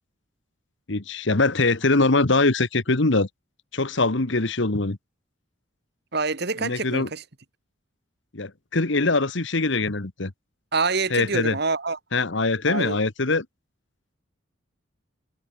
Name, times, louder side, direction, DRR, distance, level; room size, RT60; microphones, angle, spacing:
voice 1, 0.9-3.3 3.7-5.0 6.6-7.1 8.3-10.3 11.1-11.5 12.1-13.4, left 3 dB, 60° left, 1.4 m, -22 dB
voice 2, 6.1-7.2 10.7-12.0 12.7-13.0, right 4 dB, 50° right, 1.7 m, -26 dB
head